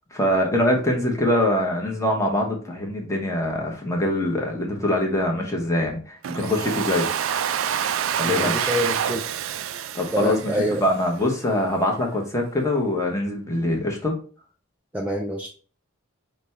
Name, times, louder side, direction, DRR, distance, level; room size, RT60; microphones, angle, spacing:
voice 1, 0.1-7.1 8.2-8.6 9.9-14.2, left 1 dB, 15° left, 0 dB, 0.9 m, -23 dB
Domestic sounds home sounds, 6.2-11.2, right 9 dB, 70° right, 0.3 m, -27 dB
voice 2, 8.2-9.2 10.1-10.8 14.9-15.5, equal, 5° right, -1 dB, 0.4 m, -26 dB
5.1 x 2.2 x 4.1 m, 0.39 s
head